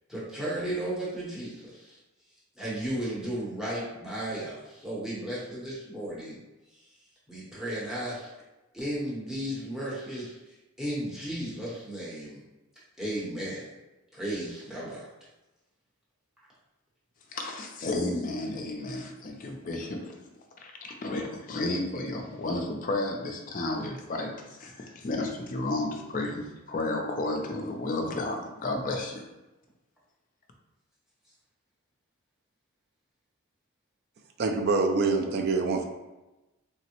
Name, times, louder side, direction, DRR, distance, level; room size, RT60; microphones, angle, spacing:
voice 1, 0.1-2.0 2.6-6.4 7.3-8.3 8.7-12.4 13.0-13.7 14.1-15.1, right 1 dB, ahead, -9 dB, 0.8 m, -34 dB
voice 2, 17.3-20.1 20.6-29.3, left 2 dB, 35° left, 2 dB, 0.4 m, -32 dB
voice 3, 34.4-35.9, right 3 dB, 45° right, 4 dB, 0.3 m, -25 dB
3.4 x 2.0 x 2.8 m, 1.0 s
head